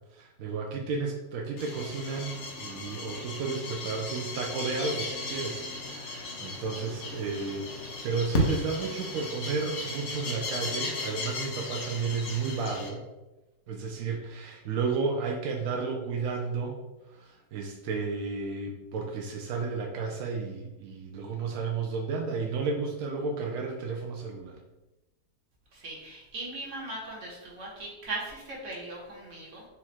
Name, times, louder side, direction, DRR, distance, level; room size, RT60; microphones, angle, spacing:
voice 1, 0.1-13.0 13.7-16.8 17.1-24.6, right 4 dB, 75° right, 0 dB, 0.7 m, -32 dB
sound 1, 1.6-12.9, left 2 dB, 55° left, 0.8 m, -35 dB
voice 2, 25.7-29.7, right 2 dB, 45° right, -4 dB, 1.4 m, -39 dB
4.1 x 2.4 x 4.3 m, 1.0 s
omnidirectional pair, 1.9 m